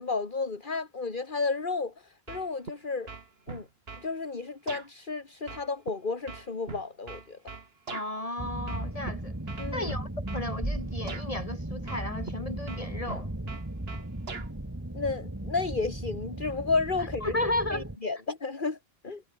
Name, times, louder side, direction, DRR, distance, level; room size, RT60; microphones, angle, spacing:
voice 1, 0.0-3.1 3.5-3.7 4.0-7.4 9.6-9.9 14.9-17.3 17.7-18.8 19.0-19.2, left 4 dB, 50° left, 2.3 m, -32 dB
sound 1, 2.3-2.8 3.1-4.1 4.7-4.9 5.5-8.1 8.7-9.1 9.5-10.5 11.1-11.3 11.9-12.4 12.7-14.5, right 4 dB, 70° right, 2.0 m, -41 dB
voice 2, 7.9-9.3 9.7-13.3 17.0-17.9, left 1 dB, 35° left, 4.2 m, -34 dB
sound 2, 8.4-18.0, right 1 dB, 15° right, 2.0 m, -36 dB
omnidirectional pair, 1.1 m